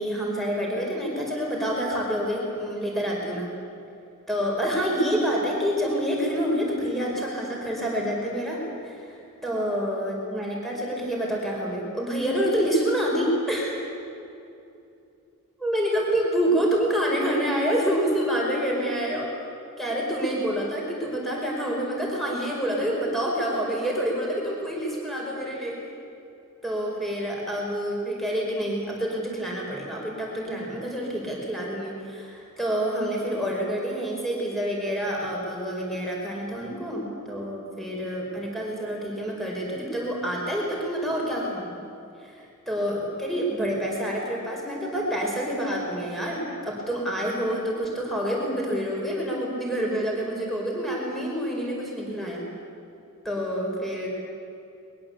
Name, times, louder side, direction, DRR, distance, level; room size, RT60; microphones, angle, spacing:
voice 1, 0.0-3.5 4.3-8.6 8.8-9.0 9.4-13.8 15.6-19.3 19.8-25.8 26.6-41.7 42.2-42.3 42.7-52.4 53.2-54.1, equal, ahead, -2 dB, 5.1 m, -27 dB
22.0 x 22.0 x 8.2 m, 2.6 s
head